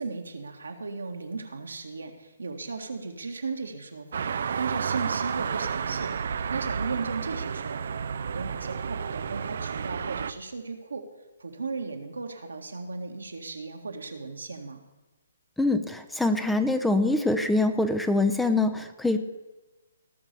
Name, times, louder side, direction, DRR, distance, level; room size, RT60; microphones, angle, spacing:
voice 1, 0.0-8.0 8.3-11.1 11.4-14.8, right 4 dB, 75° right, 3 dB, 1.8 m, -36 dB
sound 1, 4.1-10.3, right 6 dB, 60° right, 0.6 m, -31 dB
voice 2, 15.6-19.2, left 2 dB, 5° left, 9 dB, 0.8 m, -24 dB
18.0 x 6.2 x 7.0 m, 1.1 s
figure-of-eight pair, 135°, 0 cm